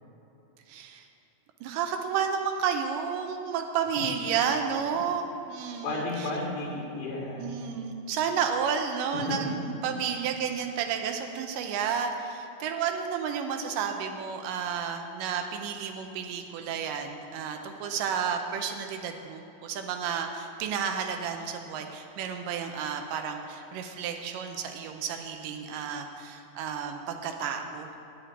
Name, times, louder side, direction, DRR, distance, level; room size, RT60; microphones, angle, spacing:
voice 1, 0.7-1.1 1.6-6.3 7.4-27.9, right 7 dB, 85° right, 5 dB, 2.4 m, -31 dB
voice 2, 5.8-7.6 9.1-9.4, left 2 dB, 75° left, -4 dB, 3.0 m, -33 dB
8.9 x 6.7 x 8.7 m, 2.9 s
omnidirectional pair, 3.8 m